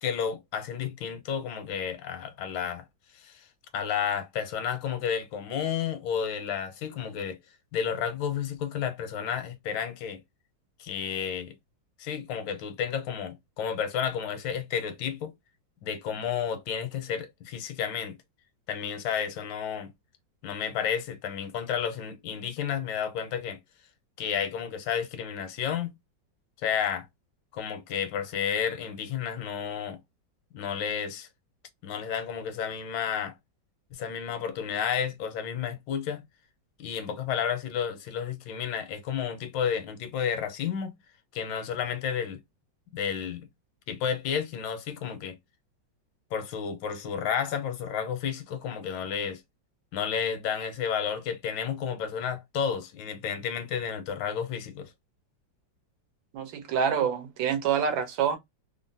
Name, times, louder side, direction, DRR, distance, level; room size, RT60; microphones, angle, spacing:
voice 1, 0.0-2.8 3.1-3.4 3.7-7.4 7.7-10.2 10.8-11.5 12.0-15.3 15.8-18.2 18.7-19.9 20.4-23.6 24.2-25.9 26.6-27.1 27.5-30.0 30.5-31.3 31.8-33.3 33.9-36.2 36.8-40.9 41.3-42.4 42.9-43.5 43.9-45.4 46.3-49.4 49.9-54.9, left 8 dB, 85° left, 1.4 m, -31 dB
voice 2, 56.3-58.4, right 7 dB, 90° right, 1.6 m, -26 dB
3.6 x 2.0 x 2.6 m
omnidirectional pair, 2.0 m